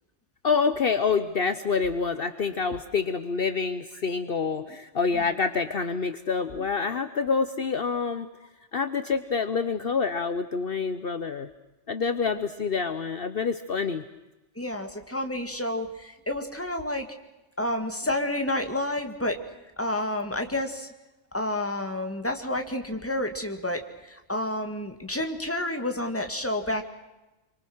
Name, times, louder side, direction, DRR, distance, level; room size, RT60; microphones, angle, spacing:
voice 1, 0.4-8.3 8.7-11.5 11.9-14.0, left 5 dB, 55° left, 10 dB, 1.2 m, -27 dB
voice 2, 14.6-17.1 17.6-19.4 19.8-20.9 21.3-26.8, left 1 dB, 10° left, 5 dB, 2.3 m, -30 dB
27.5 x 24.5 x 6.3 m, 1.0 s
omnidirectional pair, 1.2 m